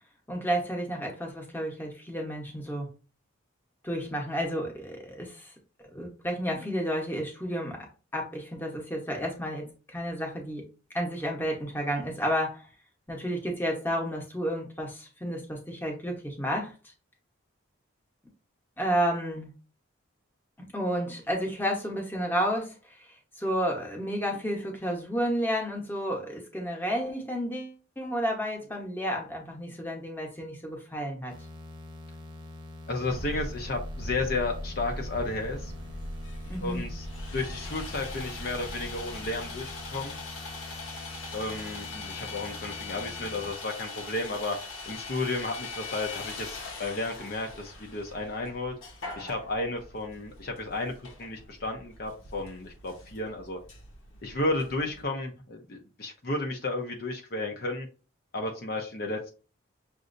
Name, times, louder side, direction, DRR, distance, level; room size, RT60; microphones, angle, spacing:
voice 1, 0.3-2.9 3.8-5.5 5.9-7.9 8.1-10.6 10.9-12.7 13.1-16.7 18.8-19.5 20.7-23.1 23.4-31.3 36.5-36.9, equal, 10° left, 0 dB, 1.0 m, -31 dB
sound 1, 31.3-43.5, left 2 dB, 20° right, 0.9 m, -45 dB
voice 2, 32.9-35.7 36.6-37.1 37.3-40.2 41.3-44.6 44.9-48.7 49.2-50.9 51.2-53.6 54.2-57.9 58.3-59.3, left 2 dB, 45° left, 2 dB, 0.7 m, -33 dB
sound 2, 33.0-39.9, equal, 65° right, 0.4 m, -40 dB
Sawing, 35.6-55.0, left 3 dB, 80° left, 1.2 m, -42 dB
6.3 x 2.7 x 2.6 m, 0.35 s
head